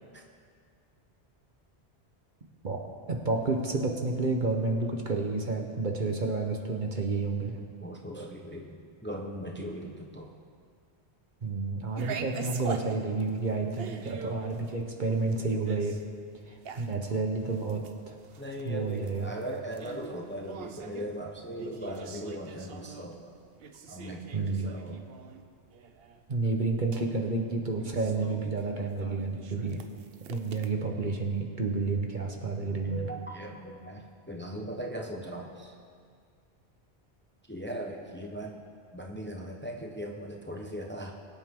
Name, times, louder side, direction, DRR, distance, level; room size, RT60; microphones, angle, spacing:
voice 1, 3.1-7.6 11.4-16.0 16.5-18.1 18.6-19.3 24.3-24.7 26.3-29.8 30.3-33.1, right 3 dB, 45° right, 2 dB, 1.2 m, -30 dB
voice 2, 7.8-10.3 18.4-23.3 23.9-25.1 32.8-35.7 37.5-38.6 38.9-41.1, equal, 10° left, 1 dB, 0.9 m, -39 dB
sound 1, 12.0-30.7, right 6 dB, 65° right, 1.0 m, -44 dB
22.5 x 9.0 x 3.8 m, 2.1 s
omnidirectional pair, 1.1 m